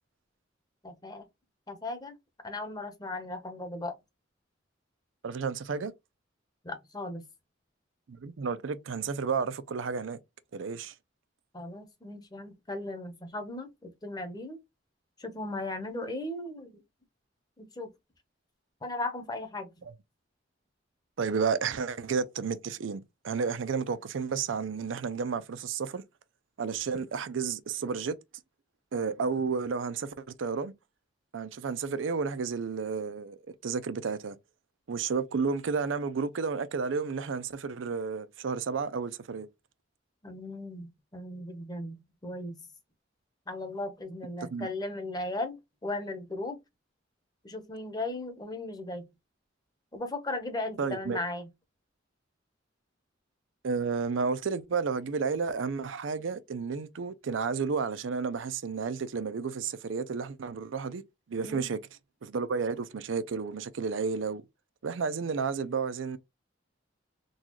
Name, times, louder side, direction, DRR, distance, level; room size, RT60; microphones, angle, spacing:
voice 1, 0.8-1.2 1.7-2.1 2.4-3.9 6.6-7.2 11.5-14.6 15.2-16.8 17.6-17.9 18.8-19.7 40.2-42.0 42.2-42.6 43.5-45.6 45.8-46.6 47.4-49.0 49.9-51.5 61.5-61.7, left 2 dB, 20° left, 0.9 m, -37 dB
voice 2, 5.2-5.9 8.1-10.2 10.5-10.9 19.9-20.0 21.2-26.0 26.6-28.2 28.9-30.7 31.3-33.4 33.6-34.4 34.9-39.5 44.5-44.7 50.8-51.2 53.6-61.0 61.3-61.8 62.2-64.4 64.8-66.2, right 5 dB, 80° right, 0.5 m, -32 dB
3.9 x 2.3 x 3.0 m
head